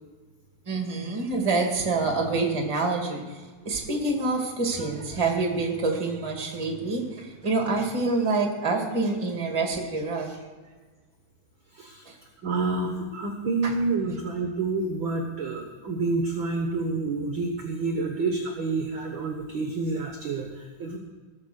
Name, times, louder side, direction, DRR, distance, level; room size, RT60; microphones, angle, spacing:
voice 1, 0.6-10.4 12.0-12.2 13.6-13.7, right 3 dB, 15° right, 2 dB, 1.4 m, -27 dB
voice 2, 11.7-12.1 12.4-21.0, right 3 dB, 65° right, 2 dB, 1.2 m, -28 dB
17.5 x 7.3 x 6.4 m, 1.4 s
omnidirectional pair, 3.8 m